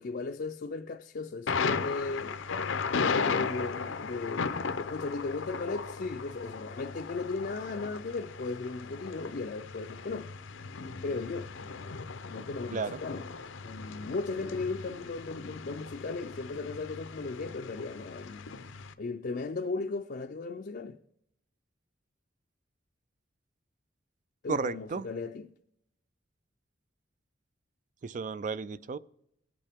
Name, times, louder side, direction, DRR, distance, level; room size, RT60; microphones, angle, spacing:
voice 1, 0.0-2.4 3.0-4.5 4.9-10.3 11.0-11.5 12.3-13.2 13.6-18.4 19.0-21.0 24.4-25.5, left 3 dB, 50° left, 0.4 m, -36 dB
Thunder, 1.5-18.9, left 5 dB, 85° left, 0.7 m, -36 dB
voice 2, 24.5-25.1 28.0-29.0, right 4 dB, 40° right, 0.3 m, -33 dB
20.5 x 8.4 x 3.5 m
head